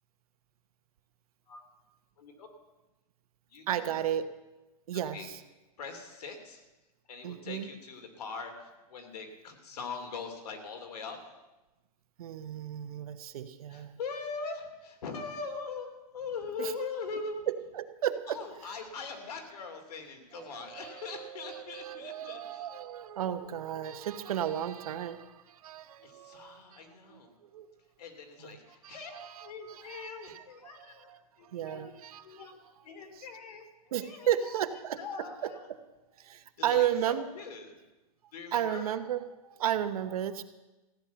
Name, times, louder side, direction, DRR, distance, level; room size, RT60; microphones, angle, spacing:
voice 1, 2.2-2.5 3.5-4.0 5.1-5.3 5.8-6.6 7.1-11.3 13.7-17.5 18.3-22.7 26.0-27.3 28.0-29.1 29.4-31.1 31.4-31.9 32.2-32.6 32.8-34.6 34.9-35.7 36.6-37.7 38.3-38.9, left 4 dB, 75° left, 5 dB, 2.9 m, -42 dB
voice 2, 3.7-4.3 4.9-5.2 7.2-7.7 12.2-14.0 16.6-16.7 17.5-18.4 20.4-26.8 27.1-27.2 27.5-27.7 28.4-28.5 28.8-30.4 30.8-31.2 31.5-32.4 33.9-35.0 36.2-37.2 38.5-40.4, right 10 dB, 65° right, 11 dB, 1.1 m, -34 dB
15.0 x 10.0 x 7.0 m, 1.1 s
hypercardioid pair, 155°, 20 cm